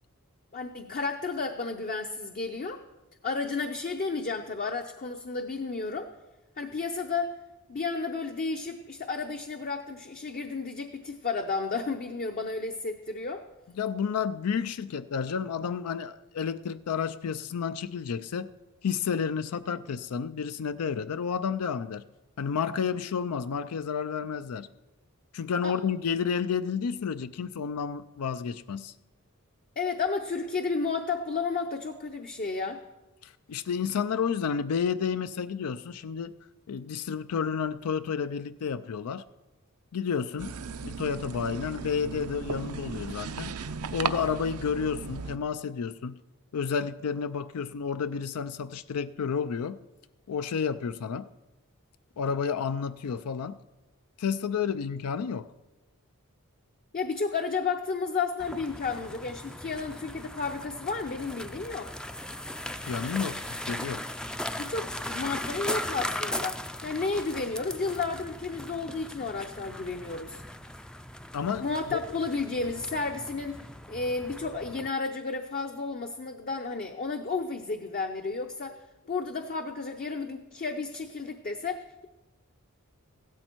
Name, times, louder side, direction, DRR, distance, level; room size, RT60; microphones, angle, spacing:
voice 1, 0.5-2.8 3.2-6.1 6.6-7.4 7.7-13.4 25.6-25.8 29.8-32.8 56.9-61.9 64.6-70.4 71.6-73.6 73.9-78.8 79.1-82.1, left 4 dB, 40° left, 5 dB, 0.6 m, -32 dB
voice 2, 13.8-18.5 18.8-22.0 22.4-24.7 25.3-28.9 33.2-36.3 36.7-39.2 39.9-40.6 40.8-43.6 43.9-46.2 46.5-49.8 50.3-51.3 52.2-53.6 54.2-55.5 62.8-64.1 71.3-72.0, left 6 dB, 85° left, 13 dB, 0.4 m, -31 dB
sound 1, 40.4-45.4, right 5 dB, 90° right, 0.6 m, -36 dB
sound 2, 58.4-74.9, left 1 dB, 5° left, 0.4 m, -38 dB
15.5 x 12.0 x 4.5 m, 1.1 s
head